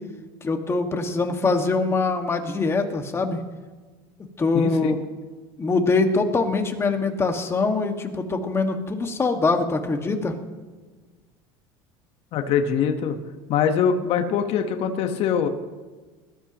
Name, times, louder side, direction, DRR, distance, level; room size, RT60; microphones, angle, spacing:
voice 1, 0.4-3.4 4.4-5.0 5.6-10.3, left 3 dB, 20° left, 4 dB, 1.8 m, -23 dB
voice 2, 4.5-4.9 12.3-13.2 13.5-15.5, left 7 dB, 55° left, 6 dB, 1.3 m, -23 dB
21.0 x 13.0 x 3.0 m, 1.3 s
supercardioid pair, 110°, 12 cm